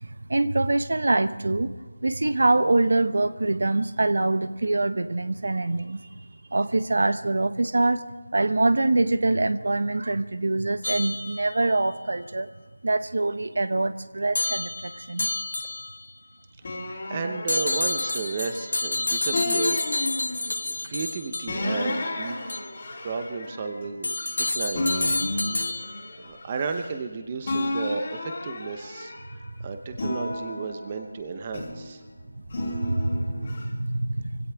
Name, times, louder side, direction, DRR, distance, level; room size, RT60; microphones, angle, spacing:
voice 1, 0.0-1.7 2.0-6.0 6.5-8.1 8.3-12.5 12.8-15.3 32.6-34.4, right 2 dB, 60° right, 13 dB, 0.9 m, -24 dB
sound 1, 10.8-11.8 14.3-16.1 17.5-21.8 22.5-22.7 24.0-26.2, left 2 dB, 60° left, 0.4 m, -29 dB
sound 2, 16.6-18.8 19.3-20.7 21.5-24.4 24.7-27.1 27.4-29.4 29.9-31.9 32.5-33.6, left 1 dB, 30° left, 3.1 m, -32 dB
voice 2, 17.1-19.9 20.6-22.3 23.0-24.9 25.3-25.5 26.2-29.1 29.6-32.0, right 4 dB, 20° right, 7 dB, 0.8 m, -33 dB
24.0 x 17.0 x 3.5 m, 1.4 s
figure-of-eight pair, 175°, 0 cm